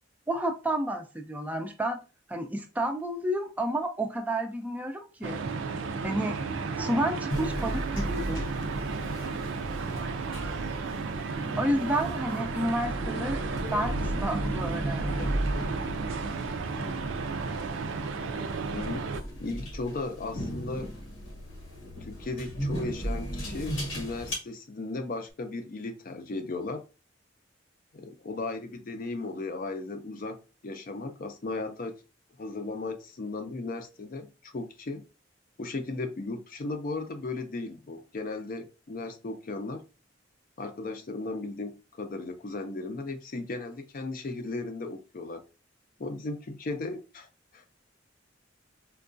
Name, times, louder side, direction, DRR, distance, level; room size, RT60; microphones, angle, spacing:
voice 1, 0.3-2.0 2.3-5.4 6.0-6.4 6.8-8.4 11.6-13.4 13.7-15.3, right 1 dB, 10° right, 0.4 m, -30 dB
sound 1, 5.2-19.2, right 4 dB, 85° right, 0.4 m, -33 dB
sound 2, 7.3-24.3, equal, 90° left, 1.1 m, -35 dB
voice 2, 18.7-19.0 19.4-20.9 22.0-26.8 27.9-32.0 32.4-35.0 35.6-39.8 40.6-45.4 46.0-47.6, left 3 dB, 50° left, 0.5 m, -36 dB
4.5 x 2.2 x 2.5 m
head